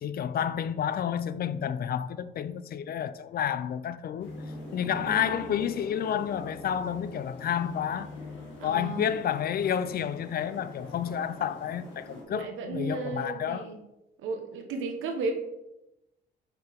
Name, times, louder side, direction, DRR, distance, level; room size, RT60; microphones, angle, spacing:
voice 1, 0.0-4.3 4.7-8.1 8.6-13.7, left 9 dB, 50° left, 0.4 m, -30 dB
sound 1, 4.2-12.2, left 2 dB, 75° left, 1.9 m, -43 dB
voice 2, 4.9-5.5 8.6-9.2 12.1-13.8 14.2-15.3, right 3 dB, 85° right, 1.0 m, -35 dB
5.8 x 5.6 x 3.5 m
cardioid pair, 90°, 20 cm